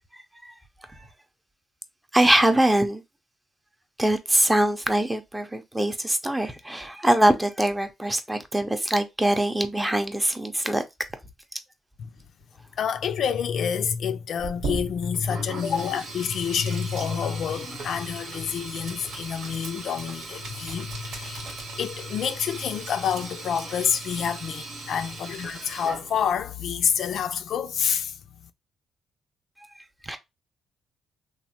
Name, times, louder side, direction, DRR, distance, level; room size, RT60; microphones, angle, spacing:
voice 1, 0.1-0.5 0.8-1.1 2.1-3.0 4.0-10.8 30.0-30.2, right 1 dB, 10° right, 0.5 m, -23 dB
voice 2, 12.8-28.2, left 7 dB, 65° left, 0.3 m, -28 dB
Sink (filling or washing), 14.4-26.4, right 3 dB, 75° right, 1.1 m, -38 dB
3.1 x 2.0 x 2.8 m
cardioid pair, 90°, 0 cm